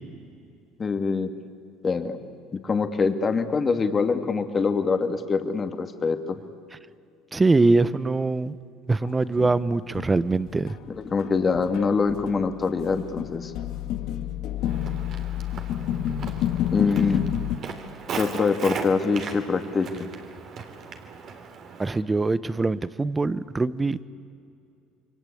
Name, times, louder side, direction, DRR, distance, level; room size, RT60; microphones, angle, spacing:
voice 1, 0.8-1.3 1.8-6.4 10.9-13.5 16.7-17.2 18.1-20.1, left 4 dB, 30° left, 7 dB, 2.2 m, -24 dB
voice 2, 7.3-8.6 8.9-10.8 21.8-24.0, right 3 dB, 20° right, 17 dB, 0.9 m, -23 dB
sound 1, 9.0-10.8 11.2-17.6, left 10 dB, 65° left, 1.5 m, -30 dB
Walk footsteps, 14.6-22.0, right 5 dB, 50° right, 3.2 m, -38 dB
28.5 x 23.0 x 8.6 m, 2.5 s
supercardioid pair, 90°, 0 cm